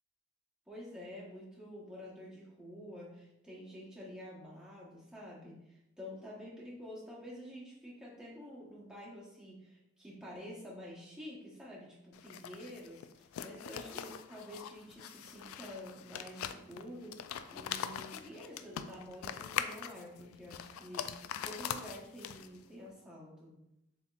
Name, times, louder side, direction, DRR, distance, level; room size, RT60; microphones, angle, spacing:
voice 1, 0.7-23.6, equal, 5° right, -6 dB, 1.0 m, -49 dB
sound 1, 12.1-22.7, left 9 dB, 90° left, 0.3 m, -42 dB
7.0 x 2.8 x 2.4 m, 0.84 s
head